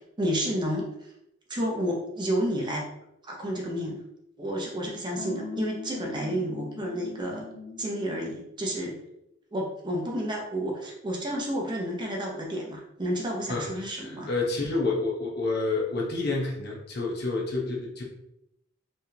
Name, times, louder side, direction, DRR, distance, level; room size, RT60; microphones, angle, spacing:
voice 1, 0.2-0.9 1.5-2.8 3.2-4.0 4.4-7.4 7.8-9.0 9.5-14.3, equal, 25° right, -1 dB, 0.8 m, -30 dB
sound 1, 5.2-8.3, left 3 dB, 80° left, 0.8 m, -41 dB
voice 2, 13.5-18.0, left 3 dB, 55° left, -2 dB, 1.0 m, -29 dB
4.4 x 3.3 x 2.8 m, 0.82 s
head